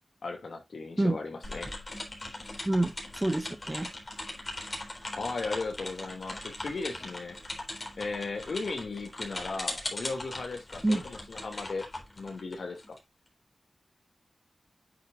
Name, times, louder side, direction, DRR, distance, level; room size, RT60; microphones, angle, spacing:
voice 1, 0.2-1.7 5.1-7.4 8.0-11.8 12.2-13.0, left 3 dB, 75° left, 2.4 m, -36 dB
sound 1, 1.4-13.0, left 2 dB, 40° left, 4.0 m, -40 dB
voice 2, 2.7-3.9 10.8-11.0, right 1 dB, 20° right, 1.0 m, -27 dB
9.3 x 6.4 x 2.5 m
wide cardioid pair, 65°, 0 cm